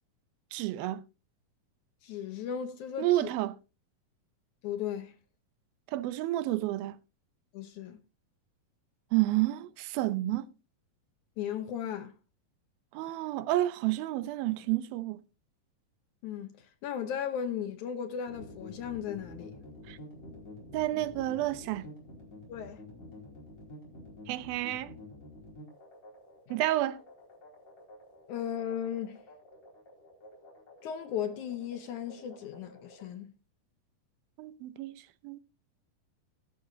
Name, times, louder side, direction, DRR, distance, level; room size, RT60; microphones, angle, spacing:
voice 1, 0.5-1.0 3.0-3.6 5.9-7.0 9.1-10.5 12.9-15.2 19.9-20.0 20.7-21.9 24.3-24.9 26.5-27.0 34.4-35.4, right 15 dB, 85° right, 2.5 m, -30 dB
voice 2, 2.0-3.3 4.6-5.1 7.5-8.0 11.4-12.1 16.2-16.5 16.8-19.5 22.5-22.8 28.3-29.2 30.8-33.3, left 9 dB, 70° left, 2.0 m, -36 dB
sound 1, 18.3-33.1, left 1 dB, 50° left, 5.8 m, -49 dB
16.0 x 11.5 x 2.7 m
omnidirectional pair, 4.2 m